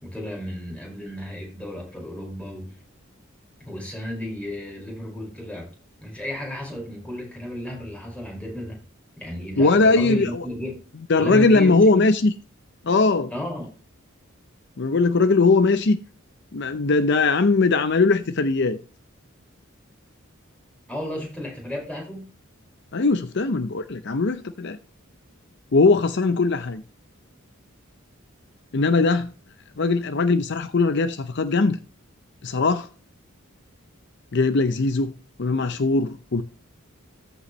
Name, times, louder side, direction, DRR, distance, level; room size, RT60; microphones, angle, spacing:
voice 1, 0.0-2.7 3.6-5.7 6.0-8.8 9.2-12.1 13.3-13.7 20.9-22.3, left 1 dB, 5° left, 5.0 m, -33 dB
voice 2, 9.6-10.4 11.1-12.3 12.9-13.3 14.8-16.0 16.5-18.8 22.9-24.8 25.7-26.8 28.7-29.3 29.8-31.8 32.4-32.9 34.3-35.1 35.4-36.4, left 3 dB, 55° left, 0.6 m, -20 dB
14.0 x 5.5 x 3.1 m
head